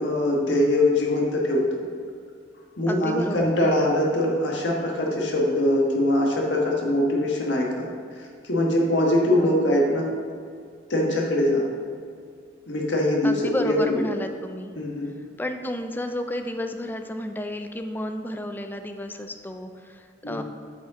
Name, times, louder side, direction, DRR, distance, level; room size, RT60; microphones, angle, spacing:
voice 1, 0.0-1.8 2.8-7.9 8.4-10.1 10.9-11.7 12.7-14.0 14.8-15.2 20.2-20.4, left 1 dB, 75° left, -1 dB, 1.4 m, -22 dB
voice 2, 2.9-3.9 9.3-9.7 13.2-14.7 15.4-20.4, left 1 dB, 10° left, 6 dB, 0.4 m, -32 dB
8.0 x 5.3 x 3.7 m, 2.1 s
head